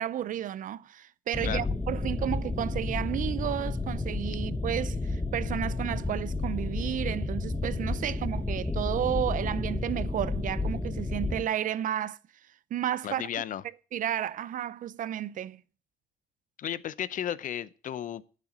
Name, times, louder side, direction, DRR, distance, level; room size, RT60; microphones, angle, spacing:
voice 1, 0.0-12.2 12.7-13.2 13.9-15.6, right 11 dB, 50° right, 0.6 m, -32 dB
sound 1, 1.3-11.4, left 2 dB, 10° left, 1.1 m, -31 dB
voice 2, 13.0-13.6 16.6-18.3, left 10 dB, 50° left, 0.7 m, -34 dB
10.5 x 7.5 x 7.3 m
cardioid pair, 110°, 17 cm